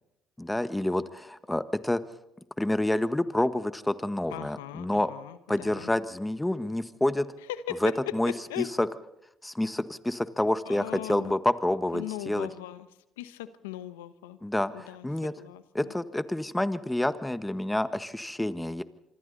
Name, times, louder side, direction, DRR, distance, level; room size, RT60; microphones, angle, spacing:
voice 1, 0.4-2.0 2.6-5.1 5.5-7.3 7.8-8.3 8.8-8.9 9.4-12.5 14.4-15.3 15.7-18.8, left 1 dB, 10° left, 12 dB, 1.5 m, -28 dB
voice 2, 4.3-5.9 7.4-8.7 10.6-11.4 11.9-12.9 13.2-14.4 14.7-15.9, left 13 dB, 90° left, 13 dB, 1.1 m, -39 dB
26.5 x 24.5 x 4.1 m, 0.89 s
hypercardioid pair, 55°, 0 cm